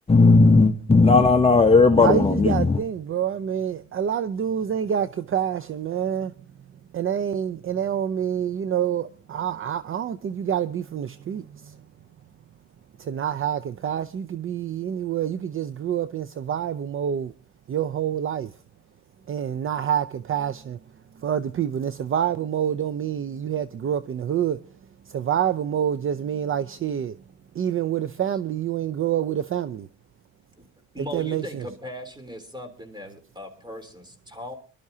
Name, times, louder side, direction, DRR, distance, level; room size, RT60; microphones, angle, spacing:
voice 1, 0.1-2.8, left 3 dB, 20° left, 0.9 m, -16 dB
voice 2, 2.0-6.3 6.9-11.8 13.0-17.3 17.7-18.5 19.3-20.8 21.2-24.6 25.1-27.2 27.5-29.9 31.0-31.6, right 9 dB, 45° right, 0.6 m, -27 dB
voice 3, 30.9-34.5, equal, 15° right, 3.3 m, -38 dB
24.5 x 12.0 x 2.8 m
cardioid pair, 90°, 30 cm